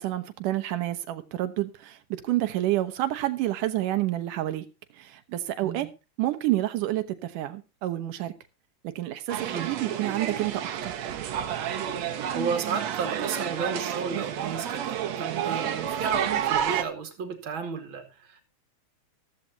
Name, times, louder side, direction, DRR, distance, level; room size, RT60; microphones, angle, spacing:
voice 1, 0.0-4.6 4.9-5.9 6.2-8.3 9.0-10.9, right 15 dB, 85° right, 10 dB, 2.6 m, -29 dB
sound 1, 9.3-16.8, right 9 dB, 65° right, 2.3 m, -30 dB
voice 2, 12.3-18.4, right 5 dB, 40° right, 6 dB, 2.9 m, -32 dB
14.5 x 14.0 x 2.8 m, 0.29 s
omnidirectional pair, 3.6 m